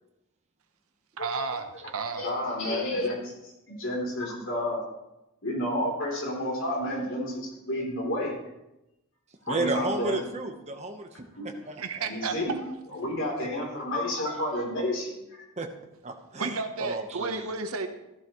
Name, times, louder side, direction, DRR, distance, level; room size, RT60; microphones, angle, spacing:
voice 1, 1.2-2.2 11.8-12.7 16.4-17.9, right 4 dB, 70° right, 7 dB, 1.0 m, -32 dB
voice 2, 2.2-4.8 5.4-8.3 9.5-10.2 11.4-11.5 12.1-12.5 12.9-15.4, left 1 dB, 60° left, -2 dB, 3.4 m, -30 dB
voice 3, 9.5-11.2 11.7-12.3 13.4-13.5 15.6-15.7 16.0-17.5, right 2 dB, 30° right, 4 dB, 1.0 m, -33 dB
14.5 x 11.0 x 3.1 m, 0.92 s
head